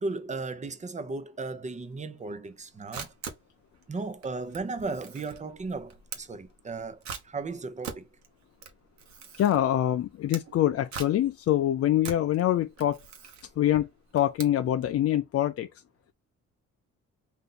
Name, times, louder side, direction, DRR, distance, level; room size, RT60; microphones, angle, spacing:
voice 1, 0.0-3.1 3.9-7.0 7.2-8.1, right 3 dB, 25° right, 0.7 m, -35 dB
Camera, 2.5-15.0, right 6 dB, 65° right, 1.1 m, -44 dB
voice 2, 9.4-13.0 13.6-13.9 14.1-15.7, left 12 dB, 50° left, 0.4 m, -25 dB
4.1 x 2.6 x 3.8 m
cardioid pair, 90°, 30 cm